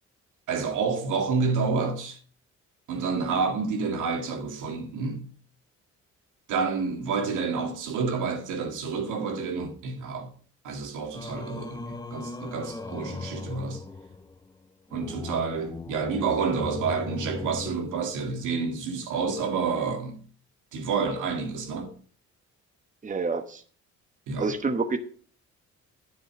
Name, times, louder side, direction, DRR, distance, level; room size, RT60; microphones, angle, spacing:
voice 1, 0.5-2.2 2.9-5.3 6.5-10.3 10.6-13.8 14.9-20.2 20.7-21.9 24.3-24.6, right 5 dB, 85° right, 2.1 m, -29 dB
Singing, 11.1-18.5, left 3 dB, 15° left, 0.8 m, -39 dB
voice 2, 23.0-23.6 24.4-25.0, right 4 dB, 25° right, 1.1 m, -27 dB
9.5 x 7.7 x 6.0 m
cardioid pair, 90°, 30 cm